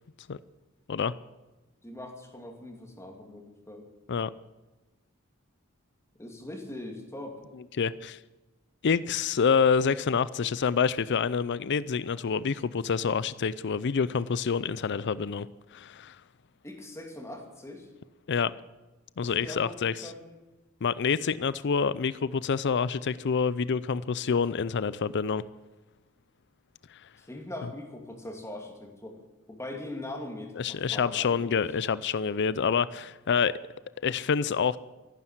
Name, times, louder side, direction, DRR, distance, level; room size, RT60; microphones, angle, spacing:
voice 1, 1.8-3.9 6.2-7.4 16.6-17.9 19.2-20.3 27.2-29.2 29.5-31.6, left 1 dB, 15° left, 2.6 m, -41 dB
voice 2, 7.8-8.2 8.8-16.2 18.3-18.5 19.2-20.1 20.8-25.4 30.6-33.6 34.0-34.8, left 6 dB, 55° left, 0.5 m, -27 dB
14.0 x 11.5 x 7.9 m
head